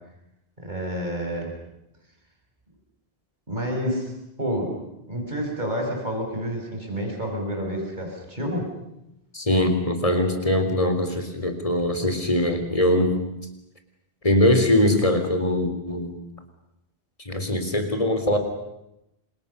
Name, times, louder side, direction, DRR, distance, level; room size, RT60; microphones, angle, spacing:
voice 1, 0.6-1.5 3.5-4.1 4.4-4.7 5.1-8.7, equal, 45° right, 1 dB, 6.4 m, -29 dB
voice 2, 9.3-13.1 14.2-16.2 17.3-18.4, left 1 dB, 35° left, 7 dB, 3.8 m, -22 dB
30.0 x 26.5 x 6.8 m, 0.86 s
omnidirectional pair, 1.0 m